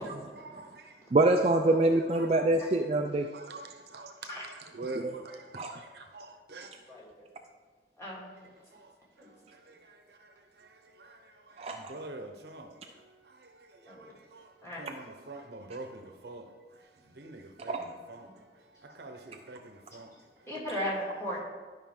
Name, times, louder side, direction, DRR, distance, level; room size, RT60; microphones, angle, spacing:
voice 1, 0.3-1.1 1.6-1.8 2.1-2.7 3.3-6.7 8.4-21.0 21.3-21.4, right 2 dB, 65° right, 0.8 m, -47 dB
voice 2, 1.1-3.3 5.0-5.1 5.6-5.7 11.6-11.9 17.7-17.9, right 2 dB, 35° right, 0.4 m, -25 dB
voice 3, 6.9-7.3 8.0-8.3 9.2-9.3 13.9-14.1 14.6-14.9 20.5-21.4, equal, 15° left, 2.2 m, -36 dB
11.5 x 5.6 x 3.6 m
head